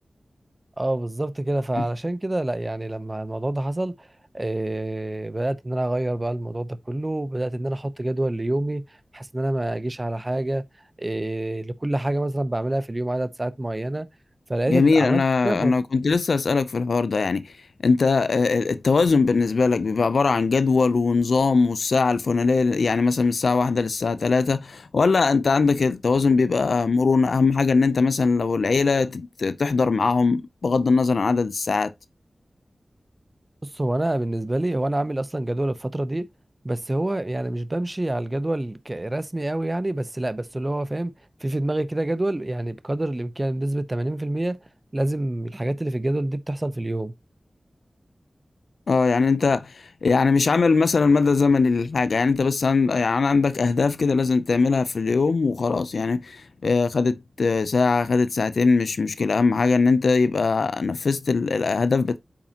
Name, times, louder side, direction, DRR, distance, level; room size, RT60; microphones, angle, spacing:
voice 1, 0.8-4.1 4.3-8.8 9.1-10.6 11.0-14.1 14.5-15.7 33.6-36.2 36.6-41.1 41.4-44.6 44.9-47.1, right 1 dB, 25° right, 0.7 m, -27 dB
voice 2, 14.7-17.5 17.8-31.9 48.9-62.2, left 4 dB, 85° left, 0.5 m, -21 dB
8.6 x 5.9 x 2.9 m
wide cardioid pair, 90°, 0 cm